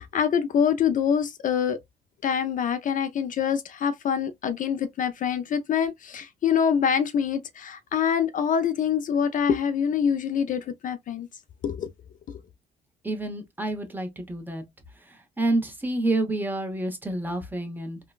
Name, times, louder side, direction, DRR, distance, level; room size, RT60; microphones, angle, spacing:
voice 1, 0.0-1.8 2.2-11.3 11.6-11.9 12.3-12.4, left 7 dB, 50° left, 0.4 m, -25 dB
voice 2, 13.0-14.6 15.1-18.0, right 2 dB, 10° right, 1.0 m, -28 dB
3.7 x 2.2 x 2.3 m
cardioid pair, 100°, 17 cm